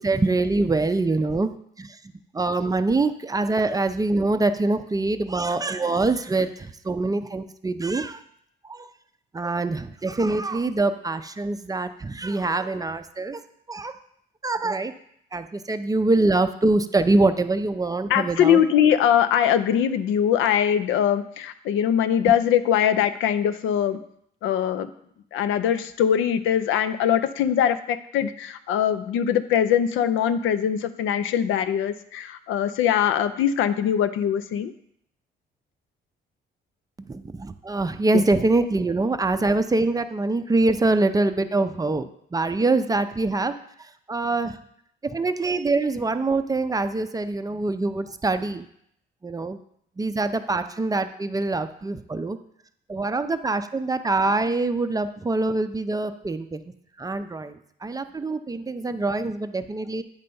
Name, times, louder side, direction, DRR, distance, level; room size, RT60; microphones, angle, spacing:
voice 1, 0.0-2.0 2.3-8.2 8.6-8.9 9.3-13.4 13.7-14.0 14.4-14.9 15.3-18.6 22.2-22.3 37.0-44.6 45.0-48.7 49.2-49.6 50.0-52.4 52.9-56.6 57.0-60.0, right 2 dB, 20° right, 10 dB, 0.4 m, -24 dB
voice 2, 18.1-24.0 24.4-24.9 25.3-34.7, left 9 dB, 85° left, 11 dB, 0.5 m, -22 dB
8.8 x 3.3 x 5.4 m, 0.70 s
cardioid pair, 90°, 20 cm